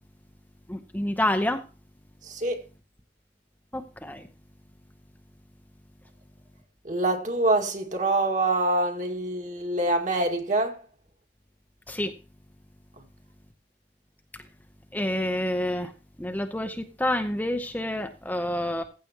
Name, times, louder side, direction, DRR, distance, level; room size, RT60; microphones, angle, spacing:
voice 1, 0.7-1.6 3.7-4.3 11.9-12.1 14.9-15.9 16.2-18.8, left 1 dB, 10° left, 0.8 m, -28 dB
voice 2, 2.2-2.6 6.8-10.8, right 2 dB, 45° right, 2.0 m, -25 dB
15.0 x 7.7 x 3.0 m
head